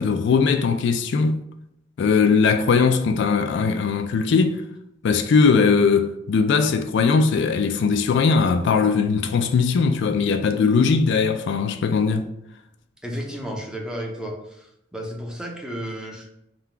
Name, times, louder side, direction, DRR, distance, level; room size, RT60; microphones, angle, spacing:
voice 1, 0.0-1.4 2.0-4.6 5.0-12.3, left 5 dB, 65° left, 0.3 m, -20 dB
voice 2, 13.0-16.3, equal, 5° right, 0.6 m, -33 dB
3.7 x 2.2 x 4.4 m
head